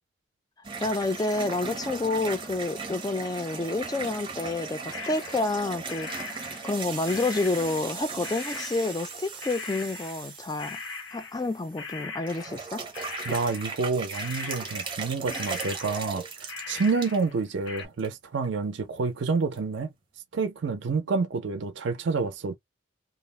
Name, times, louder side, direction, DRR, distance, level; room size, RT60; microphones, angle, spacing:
sound 1, 0.6-11.9 12.3-17.2 17.7-18.1 18.4-18.5 19.5-19.6, right 5 dB, 25° right, 0.7 m, -38 dB
voice 1, 0.8-10.8 11.1-12.8, left 2 dB, 20° left, 0.3 m, -29 dB
sound 2, 4.9-5.6 5.9-8.0 8.2-17.4 17.6-17.9, left 4 dB, 75° left, 0.5 m, -40 dB
voice 2, 13.3-16.2 16.7-19.9 20.3-22.6, right 4 dB, 65° right, 0.4 m, -28 dB
2.3 x 2.0 x 3.1 m
head